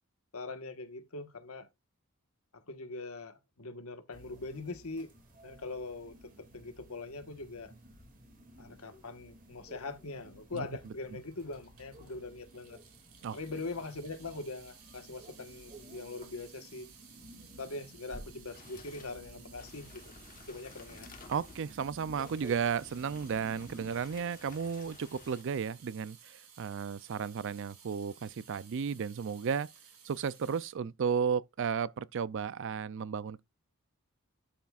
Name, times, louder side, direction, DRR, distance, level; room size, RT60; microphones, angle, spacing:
voice 1, 0.3-1.7 2.5-5.1 5.4-7.7 8.6-12.8 13.3-16.9 17.6-20.1 20.5-21.1, left 3 dB, 80° left, 1.3 m, -42 dB
sound 1, 4.1-23.9, right 1 dB, 40° right, 2.2 m, -54 dB
Water tap faucet / Sink (filling or washing) / Drip, 11.1-30.7, right 7 dB, 90° right, 3.3 m, -57 dB
sound 2, 18.5-25.4, left 4 dB, 40° left, 1.2 m, -55 dB
voice 2, 21.3-29.7 30.0-33.4, right 6 dB, 55° right, 0.4 m, -34 dB
11.5 x 5.8 x 2.4 m
head